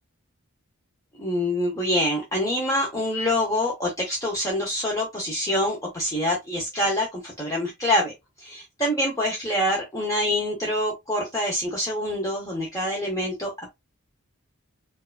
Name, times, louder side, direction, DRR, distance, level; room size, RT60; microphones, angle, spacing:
voice 1, 1.1-8.1 8.4-13.7, left 1 dB, 15° left, 0.7 m, -26 dB
4.4 x 2.4 x 2.3 m
head